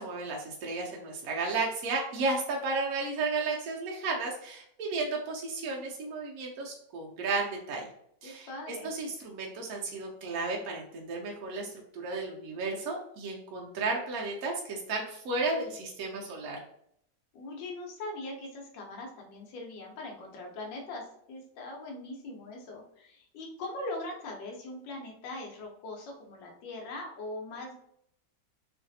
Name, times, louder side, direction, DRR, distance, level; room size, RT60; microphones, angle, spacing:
voice 1, 0.0-7.9 8.2-16.6, right 3 dB, 75° right, 0 dB, 0.8 m, -33 dB
voice 2, 8.2-8.9 17.3-27.7, left 2 dB, 75° left, 0 dB, 1.4 m, -41 dB
3.2 x 2.5 x 2.6 m, 0.70 s
omnidirectional pair, 2.0 m